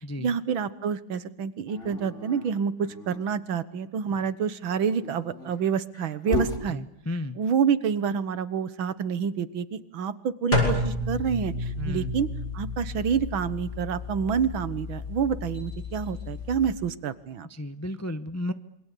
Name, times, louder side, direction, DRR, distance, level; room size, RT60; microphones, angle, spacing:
voice 1, 0.2-6.8 7.4-12.3 12.5-17.5, right 7 dB, 80° right, 14 dB, 2.1 m, -28 dB
Dog, 1.7-3.3 4.8-6.6, left 2 dB, 35° left, 3.7 m, -34 dB
voice 2, 6.7-7.4 11.8-12.1 17.5-18.5, left 1 dB, 15° left, 11 dB, 0.5 m, -33 dB
sound 1, 10.5-16.7, left 2 dB, 50° left, 7.4 m, -31 dB
27.5 x 25.5 x 8.5 m, 0.77 s
omnidirectional pair, 2.2 m